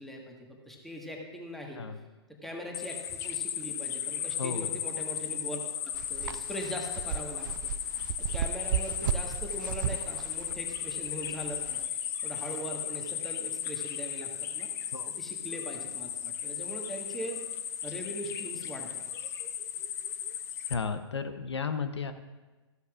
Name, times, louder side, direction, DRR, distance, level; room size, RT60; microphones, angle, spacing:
voice 1, 0.0-1.8 2.4-3.0 3.2-8.0 8.3-14.3 14.5-14.7 15.1-17.4 17.8-19.0, equal, ahead, 0 dB, 1.5 m, -41 dB
sound 1, 2.7-20.8, left 9 dB, 20° left, 0.7 m, -36 dB
voice 2, 4.4-4.8 14.9-15.1 20.7-22.1, left 5 dB, 70° left, 9 dB, 0.8 m, -33 dB
sound 2, 5.9-11.9, right 9 dB, 45° right, 0.4 m, -35 dB
14.0 x 12.5 x 2.4 m, 1.2 s
figure-of-eight pair, 120°, 15 cm